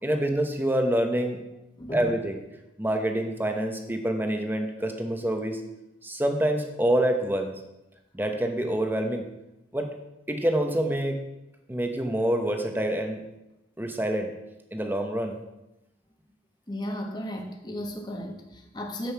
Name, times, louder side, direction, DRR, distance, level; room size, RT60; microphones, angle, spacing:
voice 1, 0.0-1.4 1.9-2.3 2.8-5.6 6.0-7.5 8.1-9.3 9.7-9.9 10.3-11.2 11.7-13.2 13.8-14.3 14.7-15.4, right 1 dB, 10° right, 4 dB, 1.0 m, -26 dB
voice 2, 1.8-2.1 16.7-19.1, equal, 25° left, 3 dB, 1.2 m, -35 dB
10.0 x 7.8 x 4.6 m, 0.94 s
head